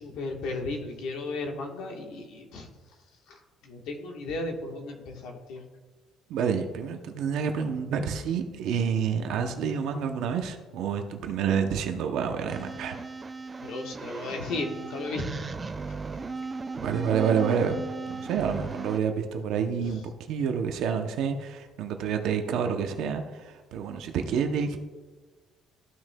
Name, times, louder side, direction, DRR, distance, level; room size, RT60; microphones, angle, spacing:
voice 1, 0.0-2.7 3.3-5.6 13.6-15.5, left 2 dB, 65° left, 3 dB, 1.3 m, -35 dB
voice 2, 6.3-13.0 16.8-17.8 18.1-24.8, right 7 dB, 60° right, 5 dB, 0.6 m, -28 dB
sound 1, 12.5-19.0, right 3 dB, 15° right, 0.4 m, -37 dB
14.0 x 6.1 x 2.2 m, 1.3 s
cardioid pair, 175°, 0 cm